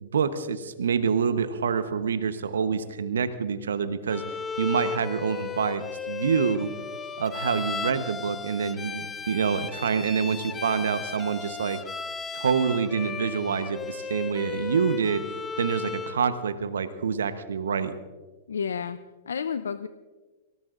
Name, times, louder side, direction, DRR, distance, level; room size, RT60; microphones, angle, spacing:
voice 1, 0.0-4.2 4.6-6.7 7.2-11.8 12.3-15.2 15.6-18.0, right 6 dB, 80° right, 11 dB, 1.0 m, -26 dB
Bowed string instrument, 4.1-16.2, left 6 dB, 15° left, 0.8 m, -35 dB
voice 2, 18.5-19.0 19.3-19.9, left 6 dB, 80° left, 12 dB, 0.6 m, -30 dB
26.5 x 18.0 x 2.5 m, 1.3 s
hypercardioid pair, 105°, 0 cm